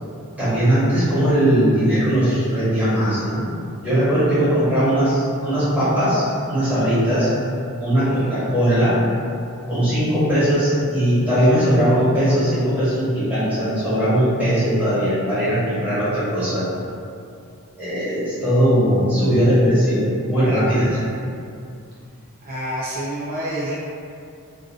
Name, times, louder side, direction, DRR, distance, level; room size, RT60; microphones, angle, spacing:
voice 1, 0.4-3.4 3.8-7.3 7.8-9.0 9.7-16.6 17.8-21.0, equal, 5° right, -13 dB, 1.3 m, -19 dB
voice 2, 8.0-8.3 22.4-23.7, right 1 dB, 40° right, -6 dB, 0.3 m, -28 dB
2.6 x 2.5 x 3.8 m, 2.5 s
head